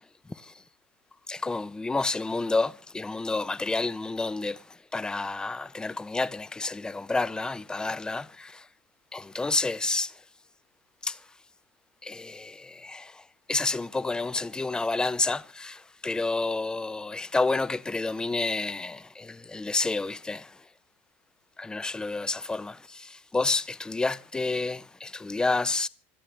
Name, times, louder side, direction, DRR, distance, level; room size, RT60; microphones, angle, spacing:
voice 1, 1.3-4.6 4.9-8.6 9.1-10.1 11.0-11.2 12.0-13.2 13.5-20.5 21.6-25.9, left 3 dB, 10° left, 0.8 m, -29 dB
26.0 x 12.5 x 3.4 m
supercardioid pair, 115°, 7 cm